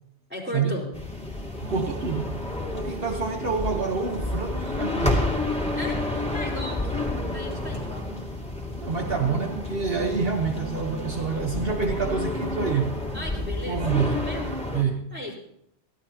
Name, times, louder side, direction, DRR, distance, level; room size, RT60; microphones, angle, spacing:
voice 1, 0.3-0.9 5.8-8.1 13.1-13.8 14.1-14.5 15.1-15.4, left 1 dB, 10° right, 4.5 m, -36 dB
sound 1, 0.9-14.8, left 2 dB, 5° left, 2.4 m, -30 dB
voice 2, 1.6-2.4 2.7-5.3 8.7-13.0 13.7-14.3 14.7-15.1, right 5 dB, 60° right, 1.3 m, -27 dB
23.0 x 15.0 x 2.9 m
omnidirectional pair, 1.1 m